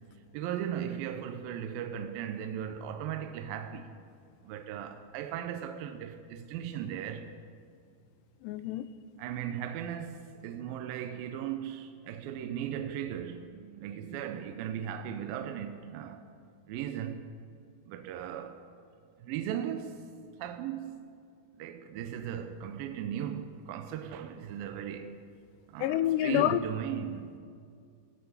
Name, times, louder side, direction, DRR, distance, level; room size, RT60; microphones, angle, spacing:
voice 1, 0.3-3.9 4.4-7.3 9.2-16.2 16.7-17.3 17.9-18.6 19.2-20.0 20.4-20.9 21.6-25.2 25.7-27.3, right 9 dB, 80° right, 2.2 m, -37 dB
voice 2, 8.4-8.9 25.8-26.6, left 13 dB, 90° left, 2.7 m, -27 dB
16.5 x 15.0 x 5.7 m
omnidirectional pair, 4.8 m